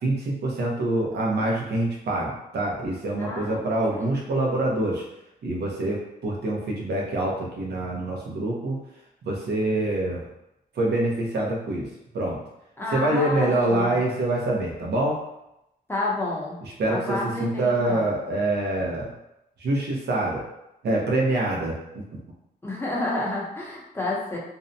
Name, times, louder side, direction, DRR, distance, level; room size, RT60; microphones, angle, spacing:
voice 1, 0.0-5.0 5.4-8.8 9.2-10.2 10.8-11.9 12.1-12.4 12.9-15.2 16.8-19.1 19.6-20.5 20.8-21.8, right 2 dB, 80° right, -2 dB, 0.7 m, -25 dB
voice 2, 3.2-3.6 3.9-4.1 12.8-14.0 15.9-16.6 16.9-18.1 22.6-24.4, left 2 dB, 15° left, -4 dB, 0.7 m, -30 dB
2.6 x 2.1 x 2.6 m, 0.87 s
wide cardioid pair, 110°, 17 cm